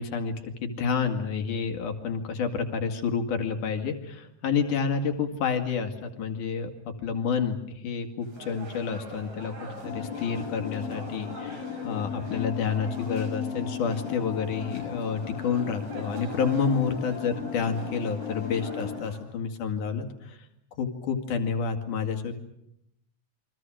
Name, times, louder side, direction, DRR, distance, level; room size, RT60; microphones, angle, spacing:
voice 1, 0.0-20.4 20.8-22.3, left 6 dB, 85° left, 5 dB, 3.7 m, -29 dB
sound 1, 8.2-19.2, right 2 dB, 85° right, 7.4 m, -45 dB
sound 2, 9.8-19.0, left 7 dB, 55° left, 3.2 m, -37 dB
28.5 x 24.5 x 6.4 m, 0.80 s
omnidirectional pair, 3.5 m